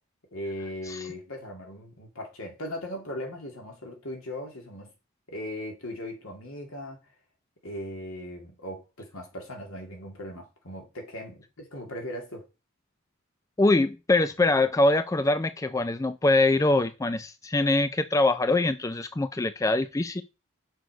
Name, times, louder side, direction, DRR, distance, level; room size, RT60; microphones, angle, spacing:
voice 1, 0.3-4.9 5.3-7.1 7.6-12.4, left 1 dB, 75° left, 2.9 m, -38 dB
voice 2, 13.6-20.2, left 2 dB, 15° left, 0.3 m, -23 dB
6.5 x 6.4 x 5.1 m
head